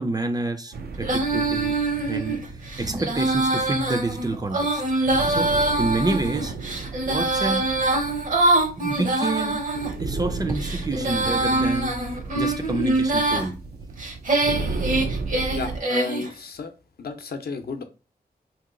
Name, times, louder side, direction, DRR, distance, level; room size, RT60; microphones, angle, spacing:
voice 1, 0.0-1.8 2.1-2.4 2.8-5.0 5.3-6.5 7.0-7.7 8.8-9.6 10.0-11.9 12.3-13.6, right 2 dB, 25° right, 0.4 m, -28 dB
sound 1, 0.7-15.8, right 4 dB, 80° right, 0.5 m, -34 dB
Female singing, 1.0-9.9 10.5-13.5 14.0-16.3, right 2 dB, 55° right, 0.8 m, -24 dB
voice 2, 15.5-16.7 17.0-17.8, left 4 dB, 70° left, 0.6 m, -33 dB
2.8 x 2.2 x 3.7 m
wide cardioid pair, 80°, 16 cm